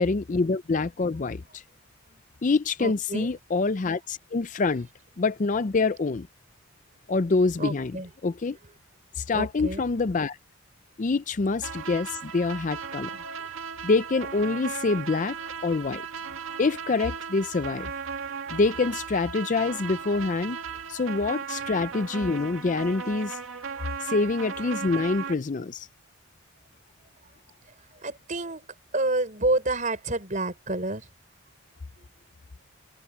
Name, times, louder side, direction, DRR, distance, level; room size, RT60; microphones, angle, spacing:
voice 1, 0.0-1.6 2.4-4.9 5.2-6.3 7.1-8.0 8.2-8.6 9.2-10.4 11.0-13.1 13.8-15.4 15.6-16.0 16.6-17.9 18.5-20.6 20.9-23.4 24.0-25.9, left 3 dB, 35° left, 0.4 m, -26 dB
voice 2, 2.8-3.3 7.6-8.1 9.3-9.9 13.4-13.5 28.0-28.6 28.9-31.1 32.0-32.1, right 2 dB, 35° right, 4.9 m, -29 dB
sound 1, 11.6-25.3, right 6 dB, 75° right, 1.8 m, -36 dB
head